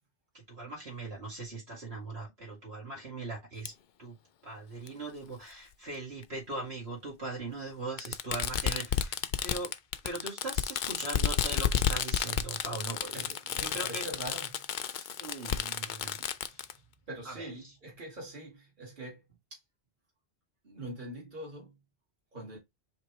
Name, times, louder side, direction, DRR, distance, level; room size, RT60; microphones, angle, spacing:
voice 1, 0.3-3.7 4.0-4.2 4.4-9.7 10.0-13.3 13.6-14.0 15.1-16.7 17.2-17.5, right 2 dB, 75° right, 2.6 m, -40 dB
Fireworks, 3.7-3.8 4.9-5.0 6.2-6.3 8.0-16.7, left 8 dB, 60° left, 0.6 m, -31 dB
voice 2, 13.0-15.1 17.1-19.6 20.6-21.8 22.3-22.6, right 1 dB, 50° right, 2.3 m, -44 dB
5.0 x 3.3 x 3.2 m
omnidirectional pair, 1.1 m